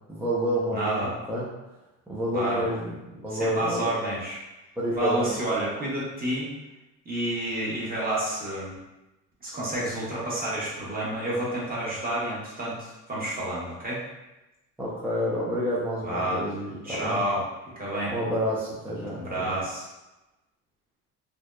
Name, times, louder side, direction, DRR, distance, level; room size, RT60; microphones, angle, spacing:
voice 1, 0.1-1.4 2.1-3.9 4.8-5.3 14.8-17.2 18.1-19.6, equal, 5° right, -9 dB, 0.5 m, -29 dB
voice 2, 0.7-1.1 2.3-2.6 3.3-4.4 5.0-6.5 7.0-8.7 9.4-14.0 16.0-16.4 16.8-17.4 17.8-18.1 19.2-19.9, right 1 dB, 25° right, -6 dB, 1.0 m, -29 dB
2.6 x 2.1 x 2.3 m, 1.0 s
supercardioid pair, 90°, 36 cm